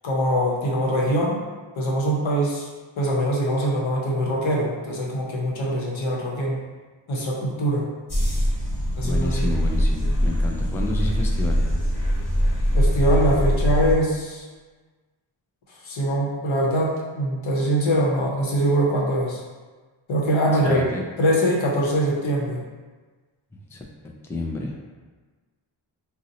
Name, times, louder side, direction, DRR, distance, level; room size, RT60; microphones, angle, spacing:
voice 1, 0.0-1.4 1.8-2.7 3.0-6.6 7.1-7.9 9.0-9.4 12.7-14.5 15.8-19.4 20.1-20.9 21.2-22.6, right 1 dB, 80° left, -3 dB, 0.8 m, -23 dB
sound 1, 8.1-13.9, equal, 50° left, 1.3 m, -22 dB
voice 2, 9.0-11.6 20.6-21.0 23.7-23.8 24.2-24.8, left 2 dB, 5° left, 0 dB, 0.3 m, -30 dB
2.7 x 2.0 x 3.8 m, 1.3 s
wide cardioid pair, 60°, 47 cm